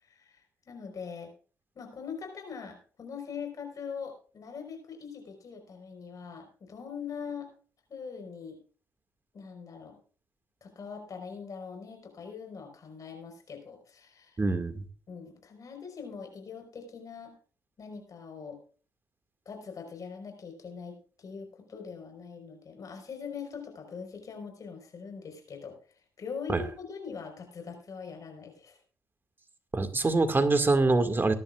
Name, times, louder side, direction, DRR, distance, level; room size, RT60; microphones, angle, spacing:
voice 1, 0.0-1.3 1.7-7.5 7.9-8.6 9.3-10.0 10.6-14.4 15.1-17.3 17.8-18.6 19.4-25.7 26.2-28.8, left 6 dB, 50° left, 3 dB, 4.6 m, -42 dB
voice 2, 14.4-14.8 26.5-26.6 29.7-31.3, right 3 dB, 25° right, 8 dB, 2.1 m, -24 dB
20.5 x 11.0 x 2.5 m, 0.40 s
hypercardioid pair, 50°, 8 cm